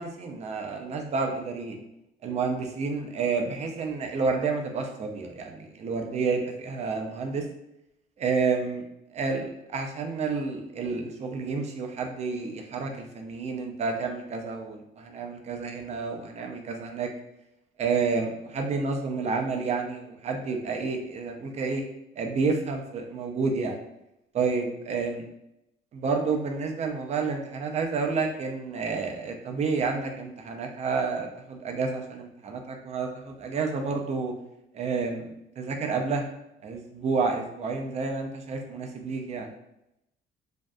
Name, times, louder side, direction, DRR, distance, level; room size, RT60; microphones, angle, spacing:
voice 1, 0.0-1.8 2.2-7.5 8.2-8.8 9.1-17.1 17.8-21.8 22.2-23.8 24.3-25.2 25.9-34.3 34.7-36.3 36.6-39.5, right 4 dB, 40° right, 3 dB, 0.4 m, -30 dB
2.6 x 2.2 x 2.2 m, 0.83 s
cardioid pair, 110°, 17 cm